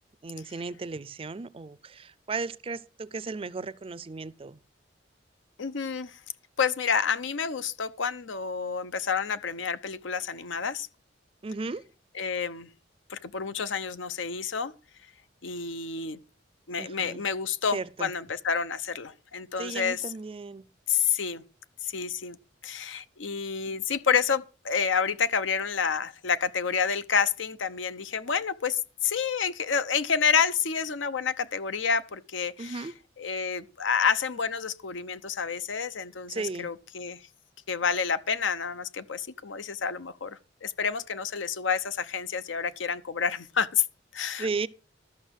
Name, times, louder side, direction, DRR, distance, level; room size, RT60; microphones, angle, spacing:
voice 1, 0.2-4.6 11.4-11.9 16.8-17.2 17.7-18.1 19.6-20.7 32.6-32.9 36.3-36.7 44.4-44.7, right 4 dB, 30° right, 0.4 m, -35 dB
voice 2, 5.6-6.2 6.6-10.9 12.1-12.7 13.1-14.7 15.4-16.2 16.7-20.1 20.9-21.4 21.8-22.4 22.6-32.9 33.2-37.2 37.7-43.8 44.1-44.7, left 6 dB, 90° left, 0.8 m, -29 dB
13.0 x 6.0 x 6.4 m
head